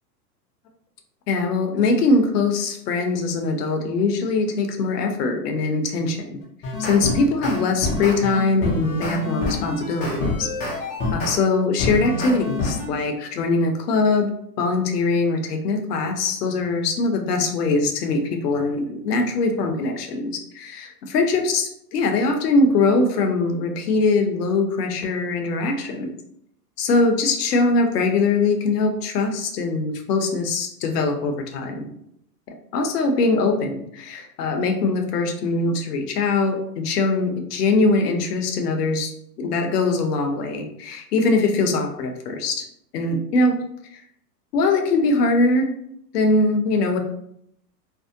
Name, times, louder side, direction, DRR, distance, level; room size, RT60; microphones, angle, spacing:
voice 1, 1.3-6.4 6.8-10.5 11.1-14.3 14.6-26.1 26.8-31.9 32.7-39.1 39.4-42.6 42.9-43.6 43.9-44.0 44.5-45.7 46.1-47.0, left 3 dB, 70° left, 5 dB, 0.7 m, -22 dB
sound 1, 6.4-11.4 11.8-12.9, left 3 dB, 20° left, 0.4 m, -26 dB
2.6 x 2.0 x 2.5 m, 0.74 s
hypercardioid pair, 105°, 49 cm